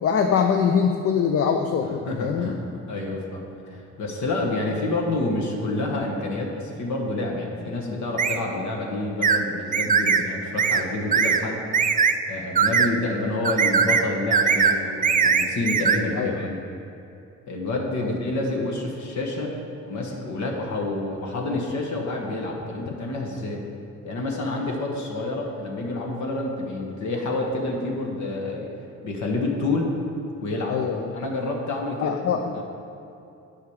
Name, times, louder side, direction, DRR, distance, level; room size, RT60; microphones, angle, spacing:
voice 1, 0.0-2.5 16.2-16.4 18.0-18.1 30.7-31.1 32.0-32.5, left 6 dB, 50° left, 5 dB, 0.6 m, -23 dB
voice 2, 1.8-11.6 12.3-16.6 17.5-19.6 19.9-23.6 24.0-28.7 29.0-29.9 30.4-30.8 31.1-32.2 32.5-32.6, left 2 dB, 70° left, 0 dB, 1.3 m, -28 dB
sound 1, 8.2-8.4 9.2-9.4 9.7-10.2 10.6-10.8 11.1-11.4 11.7-12.1 12.5-12.9 13.4-14.0 14.3-14.8 15.0-16.0, right 6 dB, 30° right, 0.4 m, -20 dB
8.0 x 5.1 x 7.2 m, 2.8 s
cardioid pair, 90°, 30 cm